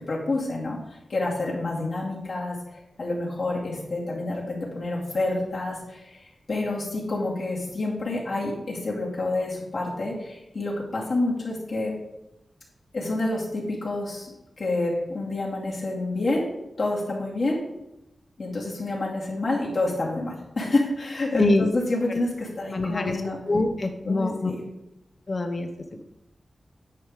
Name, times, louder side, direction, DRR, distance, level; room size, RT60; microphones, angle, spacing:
voice 1, 0.1-11.9 12.9-16.5 16.8-17.6 18.4-23.4 24.0-24.6, left 2 dB, 60° left, -5 dB, 2.6 m, -28 dB
voice 2, 21.4-21.7 22.1-22.2 22.7-23.2 23.5-24.5 25.3-25.7, left 2 dB, 40° left, 5 dB, 0.8 m, -24 dB
9.5 x 5.4 x 4.9 m, 0.91 s
wide cardioid pair, 90°, 0 cm